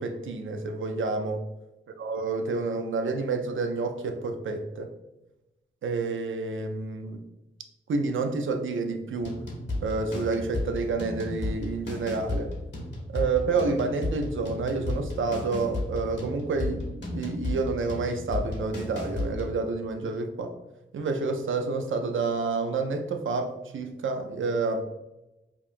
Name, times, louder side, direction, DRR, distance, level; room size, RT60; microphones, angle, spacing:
voice 1, 0.0-1.4 2.0-4.9 5.8-7.3 7.9-9.4 9.8-12.5 13.1-20.5 20.9-24.8, right 3 dB, 80° right, 6 dB, 0.5 m, -29 dB
sound 1, 9.2-19.6, left 2 dB, 60° left, 1.0 m, -34 dB
5.3 x 2.2 x 2.5 m, 0.98 s
cardioid pair, 55°, 20 cm